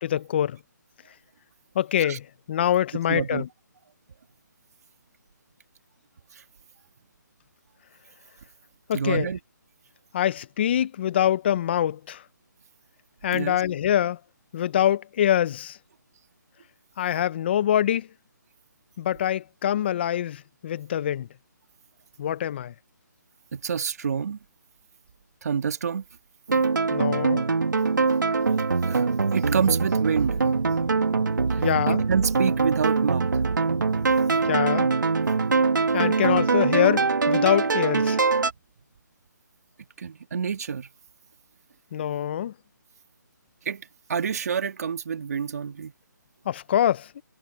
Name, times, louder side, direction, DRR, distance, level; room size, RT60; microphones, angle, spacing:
voice 1, 0.0-0.6 1.7-3.5 8.9-9.3 10.1-12.2 13.2-14.2 14.5-15.8 17.0-18.1 19.0-21.3 22.2-22.7 26.9-27.4 31.6-32.0 34.4-34.9 35.9-38.2 41.9-42.5 46.4-47.1, left 10 dB, 35° left, 1.0 m, -24 dB
voice 2, 3.1-3.4 6.3-6.4 8.9-9.4 13.3-13.6 23.5-24.4 25.4-26.0 28.8-30.4 31.5-33.4 40.0-40.9 43.7-45.9, right 6 dB, 55° right, 1.7 m, -28 dB
sound 1, 26.5-38.5, right 4 dB, 80° right, 2.7 m, -23 dB
hypercardioid pair, 160°, 10 cm